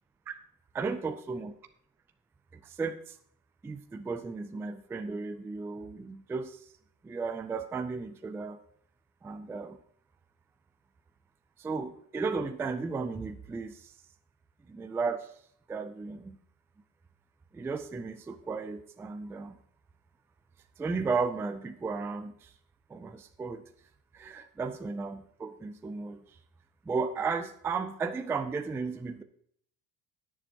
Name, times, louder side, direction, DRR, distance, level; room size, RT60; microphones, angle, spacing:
voice 1, 0.7-1.5 2.6-3.1 3.6-6.6 7.0-8.6 9.2-9.8 11.6-13.9 14.7-15.3 15.7-16.4 17.5-19.6 20.8-22.5 22.9-23.6 24.1-26.2 26.9-29.2, right 4 dB, 5° right, 8 dB, 0.3 m, -34 dB
19.5 x 6.9 x 2.8 m, 0.64 s
cardioid pair, 155°, 40 cm